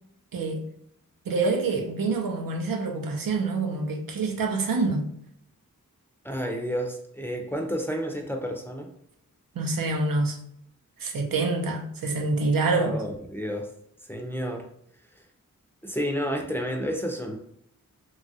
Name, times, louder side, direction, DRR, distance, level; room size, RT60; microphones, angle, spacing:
voice 1, 0.3-0.7 1.3-5.1 9.5-10.4 11.0-13.0, right 3 dB, 85° right, 0.6 m, -26 dB
voice 2, 6.2-8.9 12.7-13.7 14.0-14.7 15.1-15.2 15.8-17.4, equal, 5° left, 0.4 m, -31 dB
2.9 x 2.3 x 2.6 m
wide cardioid pair, 75°, 33 cm